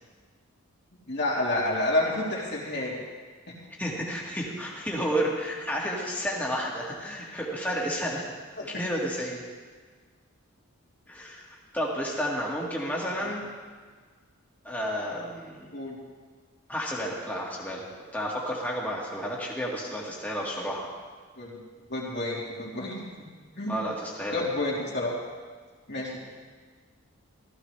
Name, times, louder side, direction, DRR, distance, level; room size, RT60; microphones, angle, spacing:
voice 1, 1.0-3.0 3.5-3.6 8.6-8.7 13.2-13.3 15.7-16.0 21.4-21.6 21.9-23.3 23.6-23.8 24.3-25.1 25.9-26.2, left 1 dB, 50° left, -5 dB, 3.3 m, -29 dB
voice 2, 3.8-8.3 8.6-9.4 11.1-13.4 14.6-15.7 16.7-17.8 18.1-20.9 23.7-24.4, equal, 5° left, -4 dB, 2.1 m, -31 dB
16.5 x 15.0 x 3.4 m, 1.5 s
head